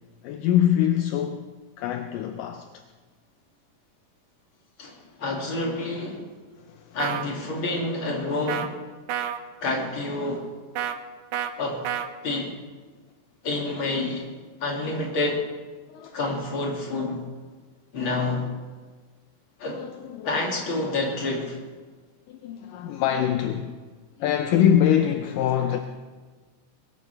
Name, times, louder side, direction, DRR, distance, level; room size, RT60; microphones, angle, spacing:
voice 1, 0.2-2.7 6.7-7.0 15.9-16.2 19.7-20.5 22.3-23.8 24.2-25.8, left 10 dB, 75° left, 2.2 m, -24 dB
voice 2, 4.8-6.2 6.9-8.7 9.6-10.5 11.6-11.9 12.2-12.5 13.4-14.3 14.6-15.4 16.1-17.2 17.9-18.5 19.6-19.8 20.2-21.6, left 2 dB, 35° left, 3.1 m, -28 dB
sound 1, 7.0-7.2 8.5-8.7 9.1-9.4 10.8-11.0 11.3-11.5 11.8-12.1, right 10 dB, 75° right, 1.9 m, -28 dB
22.0 x 13.5 x 3.4 m
omnidirectional pair, 4.1 m